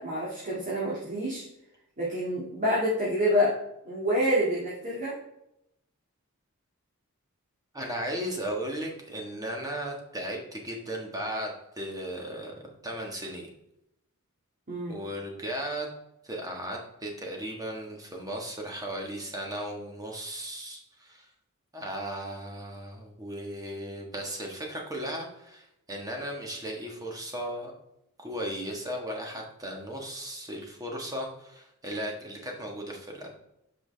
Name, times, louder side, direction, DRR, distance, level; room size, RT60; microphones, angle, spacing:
voice 1, 0.0-1.4 2.0-3.6 3.8-5.1 14.7-15.0, equal, 35° right, -7 dB, 2.1 m, -27 dB
voice 2, 7.7-12.5 12.8-13.5 14.9-15.9 16.2-21.2 21.7-27.7 28.2-33.3, right 1 dB, 15° right, 0 dB, 1.5 m, -36 dB
8.0 x 5.8 x 3.4 m, 0.83 s
head